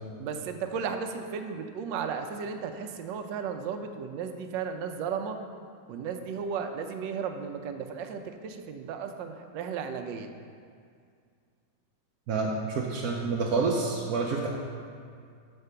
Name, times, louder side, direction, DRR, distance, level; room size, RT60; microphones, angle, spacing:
voice 1, 0.2-5.4 5.9-10.3, right 6 dB, 85° right, 6 dB, 1.3 m, -34 dB
voice 2, 12.3-14.5, right 4 dB, 65° right, -2 dB, 1.0 m, -28 dB
6.5 x 4.4 x 6.7 m, 2.2 s
omnidirectional pair, 1.9 m